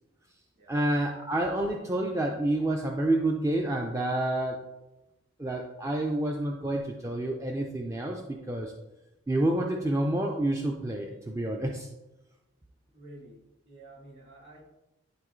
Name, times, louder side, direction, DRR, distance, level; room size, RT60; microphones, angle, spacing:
voice 1, 0.7-4.6 5.4-8.7 9.3-11.9, right 1 dB, 15° right, 1 dB, 0.3 m, -28 dB
voice 2, 12.9-13.4 13.7-14.6, right 1 dB, 50° right, -3 dB, 2.2 m, -50 dB
11.0 x 3.8 x 3.1 m, 1.0 s
head